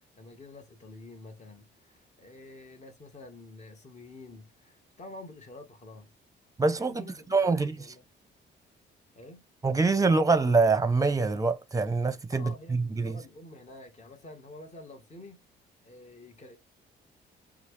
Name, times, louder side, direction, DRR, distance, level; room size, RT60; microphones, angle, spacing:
voice 1, 0.2-6.1 6.8-8.0 9.1-9.4 12.3-15.4 15.8-16.6, left 2 dB, 35° left, 1.7 m, -48 dB
voice 2, 6.6-7.0 7.3-7.8 9.6-13.2, right 3 dB, 15° right, 0.8 m, -25 dB
5.6 x 2.4 x 3.3 m
cardioid pair, 90°, 20 cm